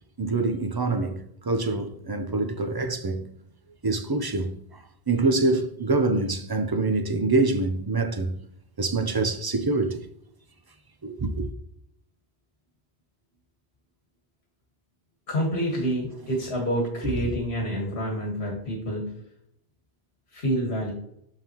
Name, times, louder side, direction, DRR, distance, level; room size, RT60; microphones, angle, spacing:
voice 1, 0.2-1.2 1.5-3.3 3.8-4.5 5.1-8.3 8.8-10.0 11.0-11.5, right 3 dB, 30° right, 0.5 m, -25 dB
voice 2, 15.3-19.2 20.3-20.9, equal, 85° left, 1.8 m, -28 dB
6.9 x 5.7 x 2.9 m
omnidirectional pair, 1.1 m